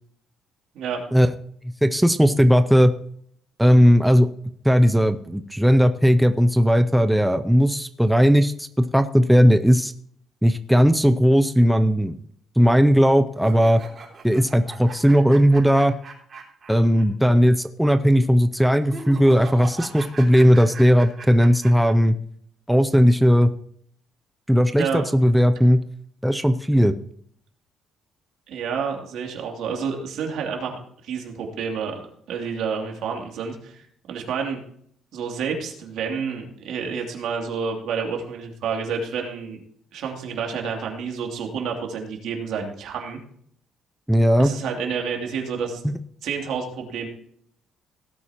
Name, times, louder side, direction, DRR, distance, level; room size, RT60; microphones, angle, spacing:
voice 1, 1.8-2.9 3.6-4.3 4.6-9.9 10.4-12.2 12.6-13.8 14.2-16.0 16.7-22.1 22.7-23.5 24.5-25.8 26.2-26.9 44.1-44.5 45.8-46.0, equal, ahead, 9 dB, 0.5 m, -17 dB
sound 1, 13.4-17.0 17.3-17.4 18.8-21.9, right 5 dB, 35° right, 3.7 m, -40 dB
voice 2, 24.7-25.0 28.5-30.8 31.0-34.6 35.1-39.6 39.9-43.2 44.4-45.8 46.2-47.1, right 6 dB, 70° right, 1 dB, 2.8 m, -29 dB
17.5 x 8.5 x 2.9 m, 0.65 s
cardioid pair, 140°, 0 cm